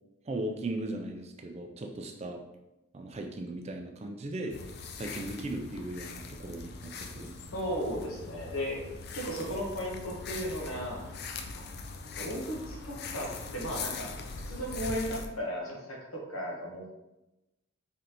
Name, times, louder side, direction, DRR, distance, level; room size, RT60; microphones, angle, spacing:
voice 1, 0.2-2.4 2.9-4.6 5.0-7.5, right 1 dB, 30° right, 3 dB, 0.3 m, -37 dB
sound 1, 4.5-15.3, left 4 dB, 45° left, 0.3 m, -41 dB
voice 2, 7.5-8.8 9.1-11.0 11.5-11.7 12.1-14.1 14.4-16.9, equal, 85° left, -2 dB, 1.1 m, -35 dB
3.8 x 3.3 x 2.9 m, 0.96 s
head